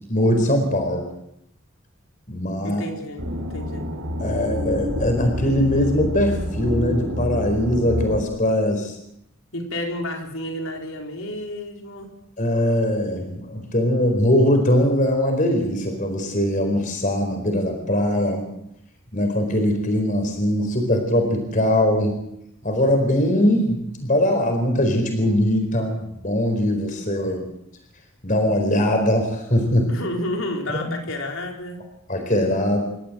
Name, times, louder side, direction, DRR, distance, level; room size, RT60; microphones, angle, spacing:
voice 1, 0.1-1.1 2.3-2.8 4.2-9.0 12.4-18.5 19.1-22.1 22.6-27.4 28.2-29.9 30.7-30.9 32.1-32.8, left 1 dB, 40° left, 4 dB, 4.5 m, -21 dB
voice 2, 2.6-3.9 9.5-12.1 29.9-31.8, left 1 dB, 80° left, 2 dB, 4.5 m, -31 dB
sound 1, 3.2-8.2, equal, 85° right, 4.8 m, -27 dB
29.0 x 14.0 x 7.9 m, 0.80 s
head